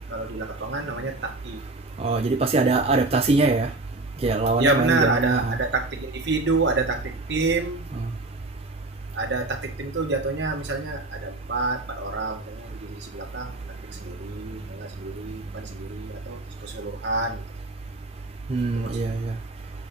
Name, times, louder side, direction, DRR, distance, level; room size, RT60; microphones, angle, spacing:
voice 1, 0.1-1.6 4.6-7.9 9.1-17.6 18.7-19.0, right 3 dB, 70° right, 1.6 m, -28 dB
voice 2, 2.0-3.7 4.2-5.6 18.5-19.2, right 3 dB, 35° right, 0.4 m, -22 dB
7.5 x 4.5 x 5.3 m
head